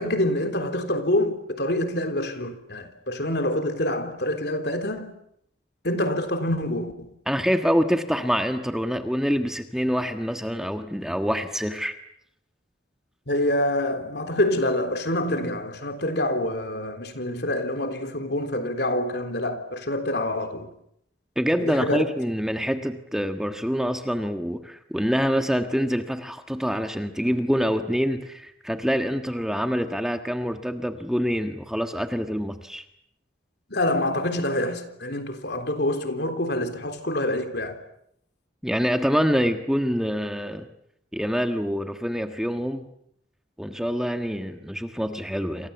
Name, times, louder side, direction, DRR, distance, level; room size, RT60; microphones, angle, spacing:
voice 1, 0.0-5.1 5.8-7.1 13.3-20.7 21.6-22.0 33.7-37.8, left 1 dB, 60° left, 3.6 m, -26 dB
voice 2, 7.3-11.9 21.4-32.8 38.6-40.7 41.1-42.8 43.6-45.7, equal, 5° right, 1.4 m, -26 dB
28.5 x 27.5 x 7.1 m
head